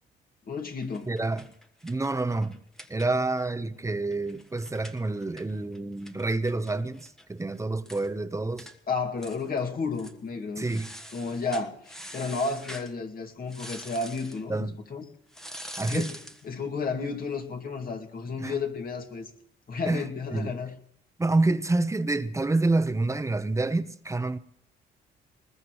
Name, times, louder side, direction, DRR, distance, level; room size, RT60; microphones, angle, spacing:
voice 1, 0.5-1.1 8.9-10.7 11.1-15.1 15.9-16.1 16.4-19.3 19.7-20.7, left 4 dB, 45° left, 2.2 m, -32 dB
sound 1, 0.8-3.5 3.8-3.9 4.1-7.3 7.6-7.7 7.9-8.1 8.6-8.8 9.2-9.6 9.9-10.2 10.6-12.9 13.5-14.4 15.3-16.5, equal, ahead, 1.3 m, -44 dB
voice 2, 1.1-1.5 1.8-2.6 2.9-8.7 10.6-10.9 14.5-14.7 15.8-16.1 18.4-18.5 19.9-20.0 20.3-20.5 21.2-24.4, right 2 dB, 15° right, 0.9 m, -28 dB
21.0 x 20.5 x 3.1 m
cardioid pair, 90°, 20 cm